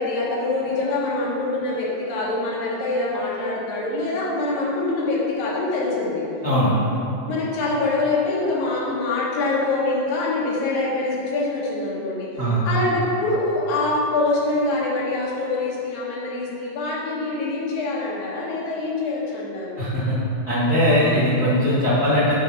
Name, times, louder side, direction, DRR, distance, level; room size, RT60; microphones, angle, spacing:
voice 1, 0.0-6.2 7.3-12.3 12.6-19.8, left 2 dB, 85° left, -5 dB, 3.1 m, -24 dB
voice 2, 19.8-20.1 20.5-22.3, equal, 50° left, -10 dB, 1.1 m, -20 dB
8.7 x 5.4 x 4.1 m, 2.7 s
omnidirectional pair, 4.0 m